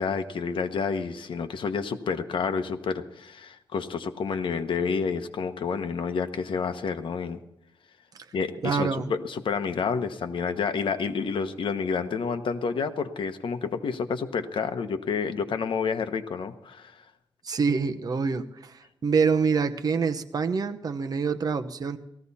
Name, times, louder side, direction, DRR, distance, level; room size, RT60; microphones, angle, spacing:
voice 1, 0.0-7.4 8.3-17.0, left 5 dB, 75° left, 8 dB, 1.1 m, -29 dB
voice 2, 8.6-9.1 17.4-18.7 19.0-22.0, right 5 dB, 45° right, 7 dB, 0.9 m, -26 dB
18.0 x 14.5 x 4.2 m, 0.86 s
wide cardioid pair, 165°, 9 cm